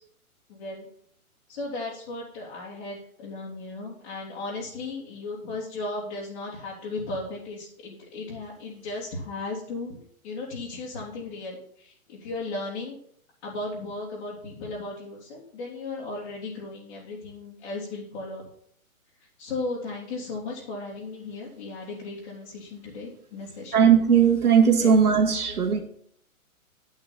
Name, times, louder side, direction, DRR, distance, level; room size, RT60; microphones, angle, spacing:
voice 1, 0.5-0.9 1.5-13.0 13.4-18.4 19.4-23.8 24.8-24.9 25.5-25.6, left 2 dB, 50° left, -5 dB, 3.2 m, -36 dB
voice 2, 23.7-25.8, right 7 dB, 85° right, 0 dB, 2.0 m, -18 dB
9.0 x 8.1 x 4.4 m, 0.63 s
hypercardioid pair, 140°, 44 cm